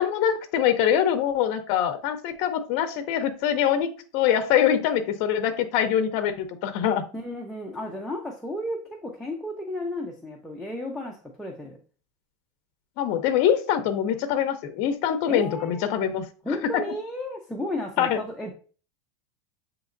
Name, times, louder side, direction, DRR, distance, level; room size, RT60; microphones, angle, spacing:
voice 1, 0.0-7.0 13.0-16.3 16.7-16.8 18.0-18.2, left 9 dB, 45° left, 7 dB, 0.6 m, -24 dB
voice 2, 7.1-11.8 15.3-15.9 16.4-18.5, left 1 dB, ahead, -2 dB, 0.5 m, -33 dB
7.3 x 2.9 x 2.5 m, 0.39 s
supercardioid pair, 165°, 0 cm